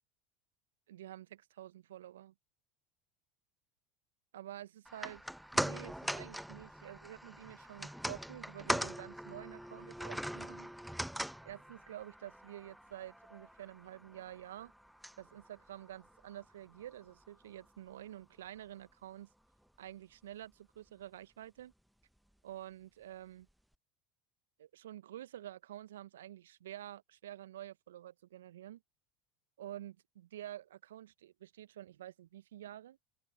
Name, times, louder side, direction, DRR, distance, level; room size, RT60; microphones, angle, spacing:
voice 1, 0.9-2.3 4.3-5.2 5.5-10.7 11.4-14.7 15.2-19.3 19.8-21.7 22.4-23.5 24.6-28.8 29.6-33.0, right 12 dB, 75° right, 1.0 m, -49 dB
sound 1, 4.9-17.2 17.6-17.7, equal, ahead, 1.1 m, -41 dB
open air
figure-of-eight pair, 75°, 0 cm